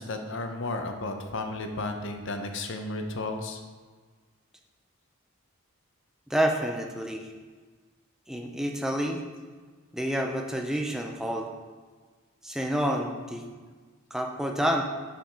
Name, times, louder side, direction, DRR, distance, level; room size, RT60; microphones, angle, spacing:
voice 1, 0.0-3.6, left 2 dB, 60° left, 5 dB, 0.8 m, -33 dB
voice 2, 6.3-7.3 8.3-9.2 9.9-11.5 12.4-13.5 14.1-14.8, equal, ahead, 2 dB, 0.6 m, -28 dB
7.6 x 5.2 x 4.5 m, 1.5 s
head